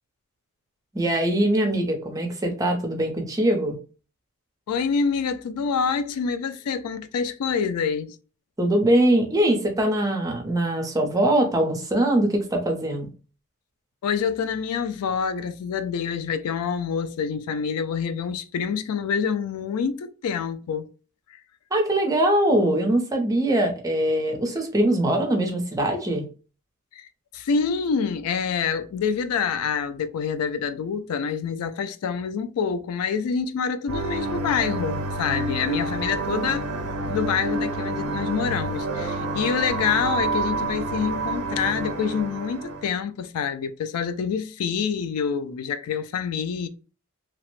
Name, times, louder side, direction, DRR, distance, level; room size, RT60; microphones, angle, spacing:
voice 1, 0.9-3.8 8.6-13.1 21.7-26.2, right 1 dB, 15° right, 0.6 m, -22 dB
voice 2, 4.7-8.2 14.0-20.9 26.9-27.1 27.3-36.7 37.1-46.7, left 6 dB, 85° left, 0.3 m, -26 dB
sound 1, 33.9-42.9, right 2 dB, 75° right, 0.5 m, -28 dB
2.9 x 2.0 x 3.0 m
head